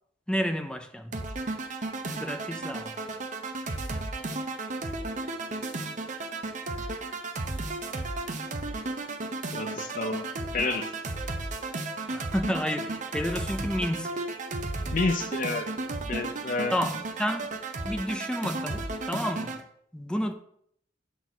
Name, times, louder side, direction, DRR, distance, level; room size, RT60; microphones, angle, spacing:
voice 1, 0.3-1.2 2.1-3.0 12.1-14.2 16.7-19.6 19.9-20.3, equal, 5° left, 0.6 m, -31 dB
sound 1, 1.1-19.6, right 2 dB, 40° right, 0.8 m, -34 dB
voice 2, 9.5-10.2 10.5-10.9 14.9-15.7 16.1-16.7, left 3 dB, 45° left, 0.6 m, -29 dB
6.9 x 4.4 x 6.1 m
head